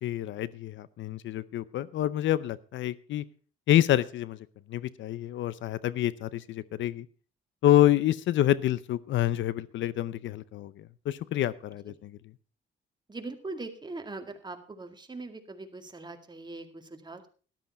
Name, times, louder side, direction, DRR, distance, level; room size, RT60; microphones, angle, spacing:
voice 1, 0.0-3.3 3.7-4.4 4.7-7.1 7.6-12.2, left 13 dB, 70° left, 19 dB, 0.6 m, -27 dB
voice 2, 13.1-17.3, right 3 dB, 20° right, 5 dB, 2.1 m, -41 dB
13.0 x 12.0 x 4.2 m, 0.38 s
cardioid pair, 90°, 20 cm